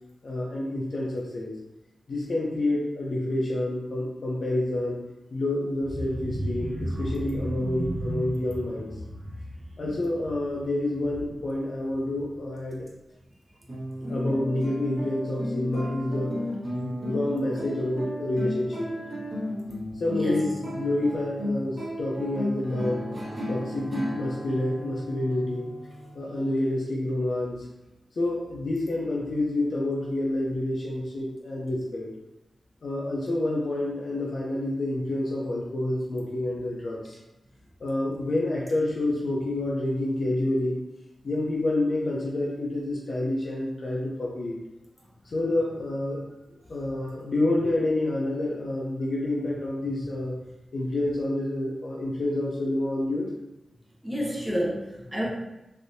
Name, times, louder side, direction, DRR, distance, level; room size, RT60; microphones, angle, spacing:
voice 1, 0.2-1.5 2.1-5.0 5.3-8.9 9.8-12.8 14.0-16.3 16.7-18.9 19.9-23.1 23.5-25.7 26.1-27.7 28.2-32.1 32.8-37.2 37.8-40.8 41.2-44.6 45.2-46.2 46.7-50.3 50.7-53.3, left 1 dB, 65° left, -4 dB, 0.5 m, -28 dB
sound 1, 5.8-11.6 11.9-12.2 12.5-12.6, right 1 dB, 80° right, 0.7 m, -35 dB
sound 2, 13.7-26.4, left 1 dB, 35° right, 1.2 m, -34 dB
voice 2, 20.1-20.5 54.0-55.3, equal, 5° right, -4 dB, 0.8 m, -29 dB
3.3 x 2.6 x 2.6 m, 0.95 s
wide cardioid pair, 105°, 0 cm